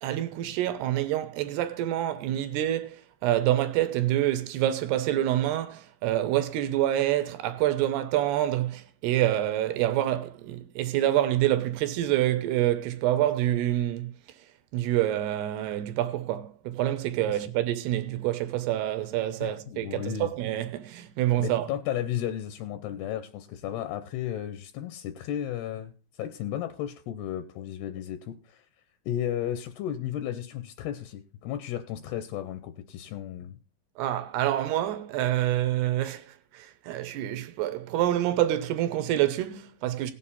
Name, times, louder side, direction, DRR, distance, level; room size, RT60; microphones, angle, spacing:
voice 1, 0.0-14.1 14.7-21.7 34.0-36.3 36.5-40.1, right 13 dB, 80° right, 2.6 m, -27 dB
voice 2, 19.4-20.3 21.4-25.9 26.2-28.6 29.1-33.6, left 11 dB, 80° left, 2.5 m, -34 dB
17.0 x 7.6 x 4.2 m
omnidirectional pair, 5.3 m